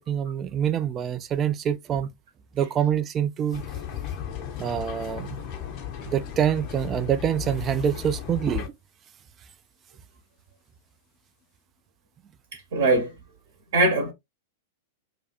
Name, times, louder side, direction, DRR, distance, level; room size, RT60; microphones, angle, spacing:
voice 1, 0.0-2.1 2.5-3.6 4.6-5.4 6.1-8.7, right 9 dB, 25° right, 0.3 m, -26 dB
sound 1, 3.5-8.7, left 9 dB, 40° left, 0.7 m, -35 dB
voice 2, 12.7-13.1 13.7-14.1, right 2 dB, 60° right, 0.9 m, -20 dB
2.5 x 2.4 x 2.4 m
figure-of-eight pair, 95°, 0 cm